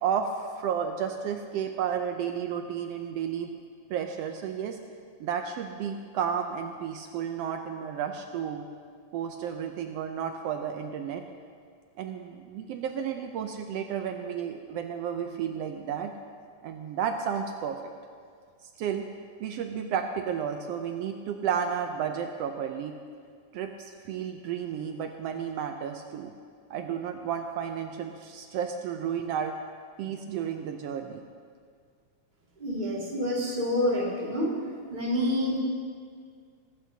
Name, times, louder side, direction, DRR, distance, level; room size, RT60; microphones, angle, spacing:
voice 1, 0.0-3.5 3.9-4.8 5.2-8.7 9.1-11.2 12.0-16.1 16.6-17.8 18.6-19.1 19.4-23.0 23.5-26.3 26.7-29.6 30.0-31.2, right 8 dB, 90° right, 5 dB, 1.3 m, -32 dB
voice 2, 32.6-34.5 34.9-35.6, left 1 dB, 15° right, -4 dB, 1.8 m, -27 dB
23.0 x 12.5 x 2.8 m, 2.1 s
omnidirectional pair, 3.5 m